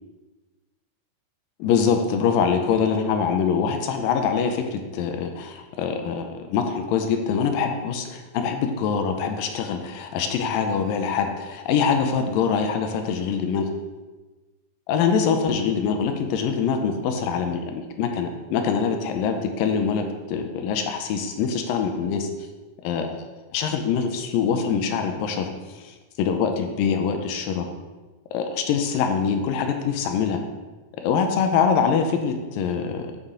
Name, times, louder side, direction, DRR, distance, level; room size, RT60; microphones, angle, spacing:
voice 1, 1.6-13.7 14.9-22.3 22.8-23.3 23.5-25.5 25.8-25.9 26.2-27.7 28.3-30.4 31.0-33.1, left 6 dB, 80° left, 5 dB, 2.2 m, -24 dB
8.0 x 5.6 x 3.7 m, 1.2 s
omnidirectional pair, 4.2 m